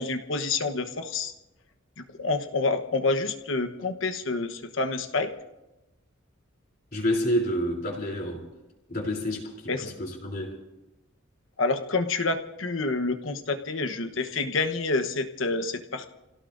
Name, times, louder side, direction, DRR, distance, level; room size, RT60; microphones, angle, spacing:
voice 1, 0.0-1.3 2.2-5.3 9.7-9.9 11.6-16.1, left 3 dB, 70° left, 8 dB, 1.2 m, -28 dB
voice 2, 6.9-8.5 8.9-10.6, equal, 50° left, -1 dB, 3.5 m, -29 dB
30.0 x 17.0 x 2.7 m, 0.97 s
head